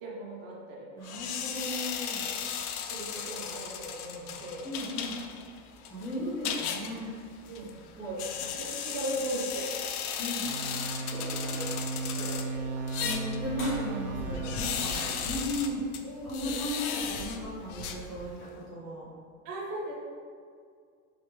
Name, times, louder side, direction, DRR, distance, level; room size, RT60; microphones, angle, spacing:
voice 1, 0.0-1.3 2.1-2.3 2.8-4.7 7.4-9.7 11.0-11.9 12.1-12.8 14.9-15.2 16.0-16.6 19.4-19.9, right 1 dB, 60° right, -4 dB, 1.1 m, -38 dB
voice 2, 0.9-2.2 4.6-5.2 5.8-7.1 10.2-10.5 13.0-15.8 16.2-19.1, equal, 10° left, -11 dB, 1.0 m, -36 dB
sound 1, 1.0-18.5, left 7 dB, 85° left, 0.5 m, -37 dB
sound 2, 9.4-15.9, left 1 dB, 30° left, 1.1 m, -50 dB
sound 3, 10.4-15.7, right 4 dB, 80° right, 0.7 m, -36 dB
3.2 x 3.2 x 3.3 m, 2.2 s
supercardioid pair, 145°, 43 cm